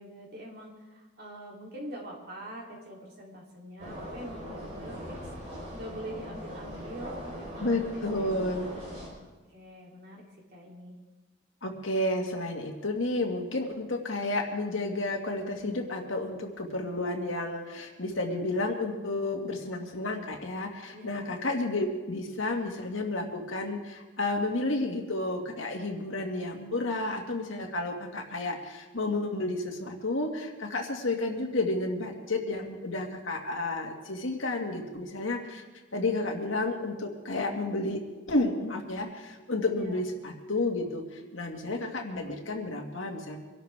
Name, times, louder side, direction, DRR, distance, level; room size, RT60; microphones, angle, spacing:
voice 1, 0.0-5.3 5.7-8.4 9.1-11.0 20.9-21.3 39.7-40.1, right 1 dB, 50° right, -2 dB, 3.4 m, -44 dB
sound 1, 3.8-9.1, equal, 35° right, 4.7 m, -41 dB
voice 2, 7.6-8.7 11.6-35.6 35.9-43.4, left 2 dB, 80° left, 2 dB, 2.1 m, -31 dB
24.5 x 12.0 x 3.6 m, 1.3 s
head